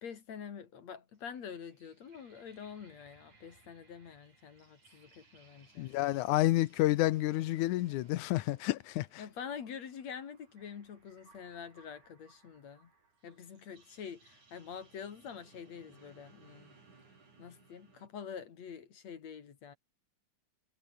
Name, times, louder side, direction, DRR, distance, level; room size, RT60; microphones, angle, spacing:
voice 1, 0.0-5.9 9.2-12.9 13.2-16.7 17.0-19.8, left 7 dB, 65° left, 3.4 m, -46 dB
sound 1, 1.1-18.1, right 4 dB, 75° right, 7.5 m, -64 dB
voice 2, 5.8-9.1, left 16 dB, 80° left, 2.2 m, -29 dB
omnidirectional pair, 3.4 m